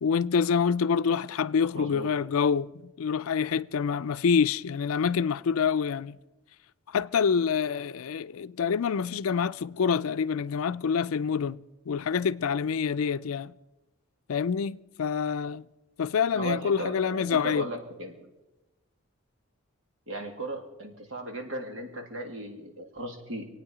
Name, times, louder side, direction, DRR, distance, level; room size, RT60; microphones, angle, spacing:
voice 1, 0.0-6.2 6.9-13.5 14.3-15.7 16.0-17.7, left 6 dB, 85° left, 0.4 m, -27 dB
voice 2, 1.8-2.3 16.3-18.3 20.1-23.5, right 1 dB, 70° right, 2.3 m, -37 dB
26.5 x 9.1 x 4.9 m
head